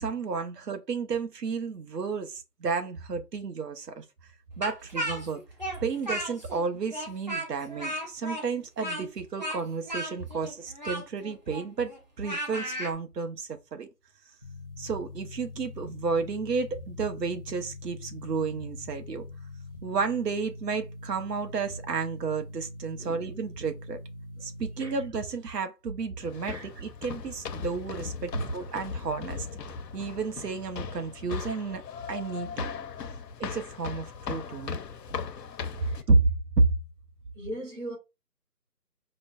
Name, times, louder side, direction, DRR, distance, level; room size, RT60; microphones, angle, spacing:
voice 1, 0.0-4.0 4.6-5.4 5.8-11.9 12.2-13.9 14.8-19.2 19.8-24.0 24.4-29.5 29.9-31.8 32.1-32.7 33.4-34.8 36.1-36.7, right 4 dB, 75° right, 0.8 m, -31 dB
Speech, 4.6-6.6 6.9-12.9, right 1 dB, 30° right, 0.7 m, -35 dB
sound 1, 14.4-25.1, left 2 dB, 35° left, 0.5 m, -43 dB
sound 2, 26.2-36.0, left 6 dB, 80° left, 0.6 m, -38 dB
voice 2, 28.2-28.5 33.0-33.2 35.7-36.0 37.4-38.0, right 1 dB, 45° right, 1.9 m, -37 dB
5.0 x 2.1 x 2.3 m
figure-of-eight pair, 165°, 49 cm